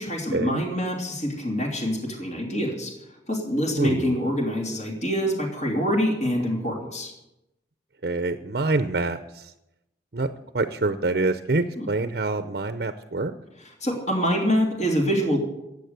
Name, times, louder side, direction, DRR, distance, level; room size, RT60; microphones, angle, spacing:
voice 1, 0.0-2.9 3.3-7.1 11.8-11.9 13.6-15.4, equal, 40° left, 1 dB, 3.0 m, -25 dB
voice 2, 3.8-4.1 8.0-9.2 10.1-13.3, right 3 dB, 55° right, 10 dB, 0.7 m, -26 dB
16.0 x 8.4 x 8.2 m, 0.90 s
head